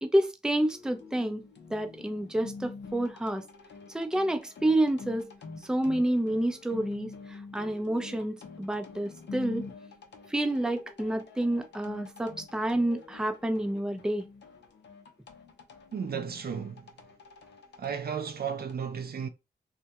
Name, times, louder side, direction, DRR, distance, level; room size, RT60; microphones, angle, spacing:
voice 1, 0.0-1.5 1.7-3.4 3.9-5.3 5.6-9.6 10.3-14.3, right 1 dB, 5° right, 0.5 m, -29 dB
sound 1, 0.6-18.7, left 4 dB, 70° left, 0.6 m, -47 dB
voice 2, 15.9-16.9 17.8-19.3, right 7 dB, 55° right, 0.4 m, -34 dB
2.3 x 2.1 x 2.8 m
cardioid pair, 45°, 19 cm